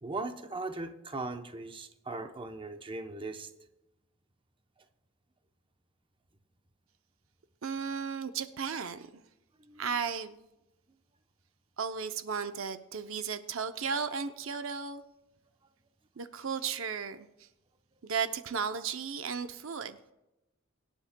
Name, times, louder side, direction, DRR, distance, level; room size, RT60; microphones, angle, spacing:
voice 1, 0.0-3.5 9.6-9.9, right 3 dB, 25° right, 7 dB, 0.7 m, -39 dB
voice 2, 7.6-9.2 9.8-10.4 11.8-15.0 16.2-17.3 18.0-20.0, right 6 dB, 65° right, 9 dB, 0.6 m, -35 dB
24.0 x 10.0 x 2.2 m, 0.97 s
head